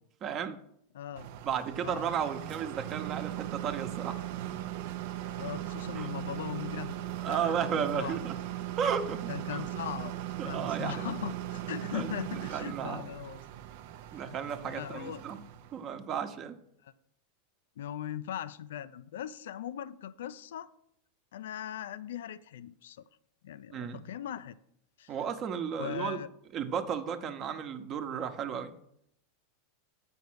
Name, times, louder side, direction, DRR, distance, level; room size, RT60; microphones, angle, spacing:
voice 1, 0.2-0.6 1.4-4.2 6.0-6.1 7.2-8.4 8.8-9.6 10.4-11.1 11.9-12.1 12.5-13.1 14.1-15.4 15.7-16.6 23.7-24.0 25.1-26.2 26.5-28.7, right 7 dB, 40° right, 0.9 m, -34 dB
voice 2, 0.9-1.3 1.8-2.1 5.4-8.2 9.3-10.1 10.4-13.4 14.1-14.4 14.6-15.2 16.8-16.9 17.8-20.7 21.3-23.0 23.4-24.6 25.0-25.2 25.8-26.3, left 10 dB, 75° left, 0.4 m, -39 dB
sound 1, 1.2-15.8, right 13 dB, 65° right, 0.5 m, -39 dB
8.3 x 5.2 x 6.3 m
hypercardioid pair, 100°, 0 cm